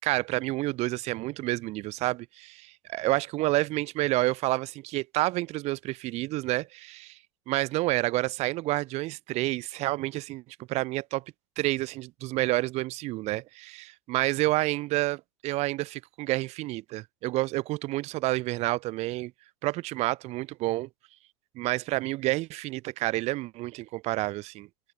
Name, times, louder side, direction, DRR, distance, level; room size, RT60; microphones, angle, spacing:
voice 1, 0.0-7.2 7.5-11.2 11.6-19.3 19.6-20.9 21.6-24.7, right 19 dB, 40° right, 1.9 m, -29 dB
open air
figure-of-eight pair, 85°, 17 cm